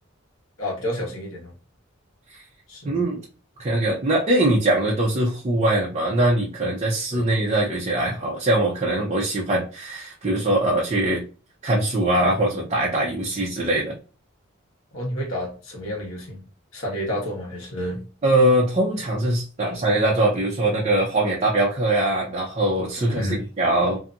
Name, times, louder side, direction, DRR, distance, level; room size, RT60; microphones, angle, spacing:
voice 1, 0.6-1.5 2.7-3.0 7.1-7.2 14.9-16.4 16.7-18.0 19.6-19.8 23.1-23.7, equal, 85° left, 1.2 m, -30 dB
voice 2, 2.8-3.2 3.6-11.3 11.6-14.0 18.2-24.0, right 1 dB, 35° right, 0.6 m, -22 dB
2.7 x 2.6 x 2.3 m
head